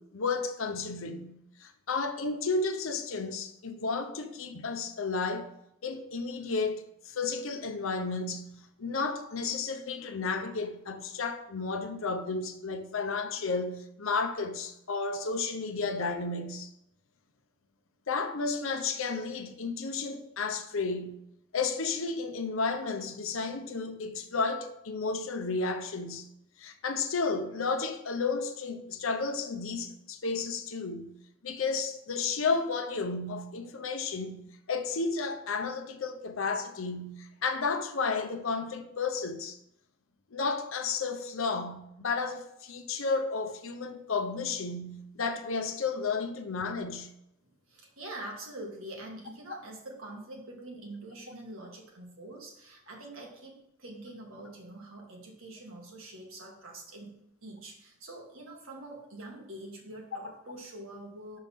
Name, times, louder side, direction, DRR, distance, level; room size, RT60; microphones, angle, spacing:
voice 1, 0.0-5.5 5.8-16.7 18.1-21.2 21.5-26.3 26.6-31.1 31.4-39.6 40.3-47.1, left 4 dB, 75° left, 0.7 m, -32 dB
voice 2, 47.7-61.4, right 1 dB, 75° right, 1.7 m, -45 dB
5.8 x 5.4 x 3.5 m
head